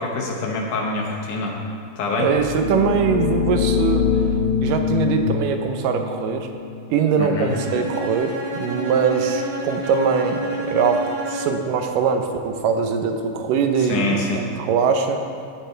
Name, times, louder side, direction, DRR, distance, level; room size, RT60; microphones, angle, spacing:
voice 1, 0.0-1.6 2.0-2.3 7.2-7.5 13.8-14.4, left 3 dB, 70° left, -1 dB, 2.9 m, -25 dB
voice 2, 2.2-4.2 4.6-6.5 6.9-15.2, right 6 dB, 90° right, 5 dB, 2.5 m, -22 dB
sound 1, 2.3-7.9, left 7 dB, 50° left, 1.6 m, -24 dB
Bowed string instrument, 7.5-11.7, equal, 50° right, 2.1 m, -29 dB
15.5 x 10.5 x 3.4 m, 2.4 s
omnidirectional pair, 3.7 m